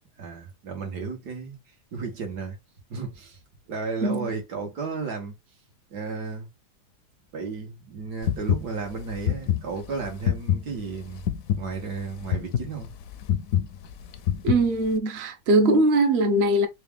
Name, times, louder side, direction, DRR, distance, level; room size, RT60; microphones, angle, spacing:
voice 1, 0.2-1.6 1.9-2.6 2.9-3.4 3.7-5.3 5.9-6.5 7.3-11.2 11.5-12.9, right 4 dB, 80° right, 1.8 m, -33 dB
sound 1, 8.2-15.0, left 10 dB, 70° left, 0.9 m, -27 dB
voice 2, 14.4-16.7, right 1 dB, 50° right, 0.8 m, -21 dB
4.0 x 2.3 x 3.4 m
omnidirectional pair, 1.7 m